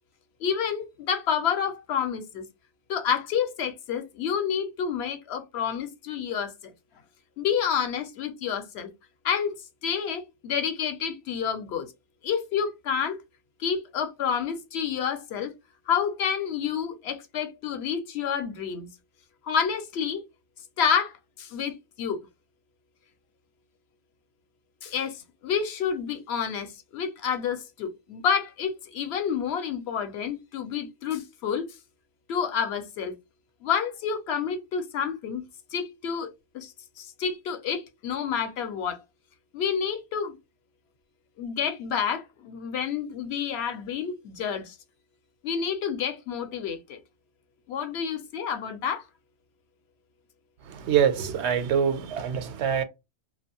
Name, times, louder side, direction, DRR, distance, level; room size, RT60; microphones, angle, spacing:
voice 1, 0.4-2.5 2.9-6.7 7.4-8.9 9.2-9.5 9.8-11.9 12.2-13.2 13.6-15.5 15.9-18.9 19.4-20.2 20.8-22.2 24.8-31.7 32.3-33.2 33.6-35.4 35.7-39.0 39.5-40.4 41.4-44.8 45.4-47.0 47.7-49.0, left 7 dB, 70° left, 0.8 m, -29 dB
voice 2, 50.7-52.8, right 8 dB, 75° right, 0.8 m, -25 dB
2.6 x 2.2 x 2.8 m
omnidirectional pair, 1.2 m